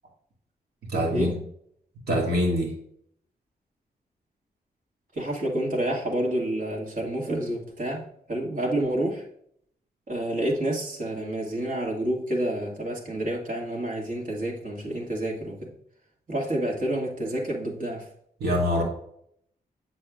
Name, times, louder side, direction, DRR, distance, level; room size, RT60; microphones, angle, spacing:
voice 1, 0.9-1.4 2.1-2.7 18.4-18.8, equal, 75° right, -1 dB, 2.1 m, -24 dB
voice 2, 5.1-9.3 10.1-15.7 16.3-18.1, right 1 dB, 55° right, -2 dB, 2.2 m, -29 dB
7.5 x 6.5 x 2.5 m, 0.68 s
cardioid pair, 60°, 17 cm